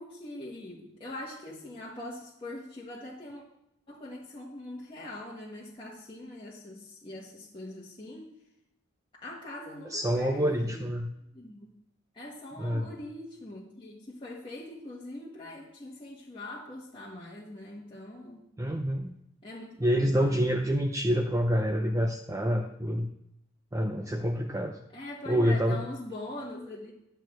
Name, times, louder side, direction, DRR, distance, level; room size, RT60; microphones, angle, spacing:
voice 1, 0.0-3.4 3.9-8.3 9.1-10.9 11.3-11.7 12.1-18.5 19.4-20.4 24.9-26.9, left 1 dB, 25° left, -5 dB, 1.4 m, -42 dB
voice 2, 9.9-11.1 12.6-12.9 18.6-19.1 19.8-23.1 23.7-24.8 25.3-25.8, equal, 15° right, 2 dB, 0.6 m, -27 dB
11.0 x 4.6 x 7.7 m, 0.83 s
head